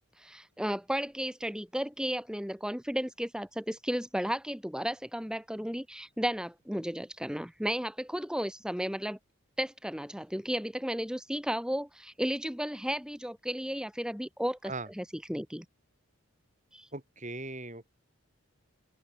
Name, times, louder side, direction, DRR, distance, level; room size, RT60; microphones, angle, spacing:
voice 1, 0.2-9.2 9.6-15.6 16.7-16.9, equal, 5° right, 2.4 m, -34 dB
voice 2, 16.9-17.9, right 2 dB, 35° right, 7.4 m, -39 dB
head